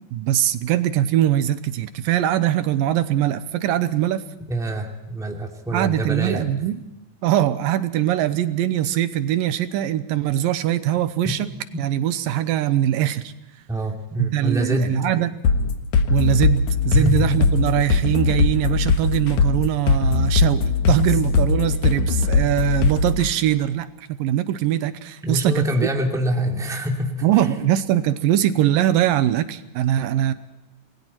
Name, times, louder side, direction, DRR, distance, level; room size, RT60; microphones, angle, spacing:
voice 1, 0.1-4.2 5.7-6.8 7.2-11.5 11.8-13.3 14.2-15.3 16.1-25.6 27.2-30.3, right 12 dB, 80° right, 12 dB, 2.5 m, -22 dB
voice 2, 4.5-6.4 11.2-11.3 13.7-15.0 16.9-17.2 25.2-27.1, equal, ahead, 1 dB, 2.0 m, -24 dB
sound 1, 15.4-23.3, left 4 dB, 60° left, 2.8 m, -19 dB
28.0 x 20.5 x 4.5 m, 0.95 s
omnidirectional pair, 4.1 m